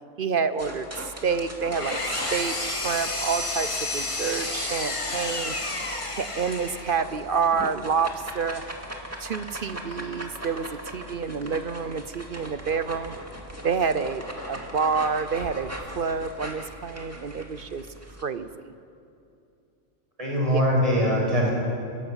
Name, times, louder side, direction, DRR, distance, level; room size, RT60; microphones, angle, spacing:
voice 1, 0.2-5.5 6.1-8.6 9.2-13.1 13.6-15.7 15.9-17.9 18.2-18.7 20.5-20.6, right 5 dB, 50° right, 12 dB, 0.8 m, -28 dB
sound 1, 0.6-18.2, right 1 dB, 10° right, 2.2 m, -40 dB
Engine, 1.4-7.1, left 2 dB, 25° left, 1.7 m, -31 dB
voice 2, 20.2-21.5, equal, 30° right, -4 dB, 6.3 m, -22 dB
28.0 x 13.0 x 8.1 m, 2.7 s
omnidirectional pair, 1.2 m